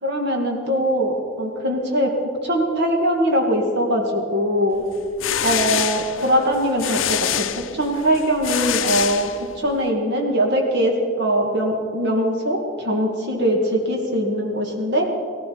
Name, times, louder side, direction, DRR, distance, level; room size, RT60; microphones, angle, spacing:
voice 1, 0.0-2.1 2.4-4.8 5.4-15.1, equal, 60° right, 1 dB, 2.2 m, -21 dB
sound 1, 4.9-9.8, left 10 dB, 85° left, 0.6 m, -26 dB
17.0 x 16.0 x 4.8 m, 2.2 s
head